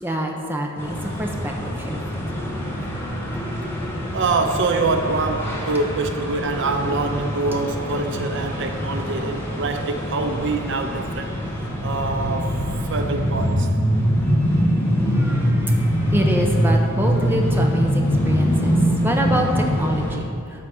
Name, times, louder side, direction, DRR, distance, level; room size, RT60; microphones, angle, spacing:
voice 1, 0.0-2.0 15.1-18.8 19.0-20.1, equal, 10° right, 1 dB, 0.8 m, -26 dB
sound 1, 0.8-20.2, equal, 10° left, 1.1 m, -23 dB
voice 2, 4.1-11.3 11.8-12.6 12.8-13.7, right 3 dB, 55° right, 6 dB, 0.5 m, -25 dB
12.0 x 4.1 x 6.2 m, 2.5 s
head